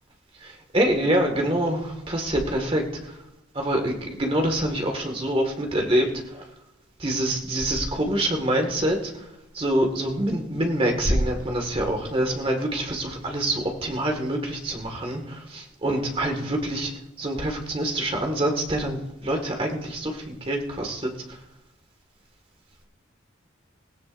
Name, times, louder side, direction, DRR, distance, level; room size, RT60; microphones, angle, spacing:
voice 1, 0.4-3.1 3.5-6.5 7.0-9.1 9.5-16.9 17.2-21.1, right 1 dB, 30° right, 2 dB, 1.9 m, -25 dB
17.0 x 17.0 x 2.6 m, 0.94 s
head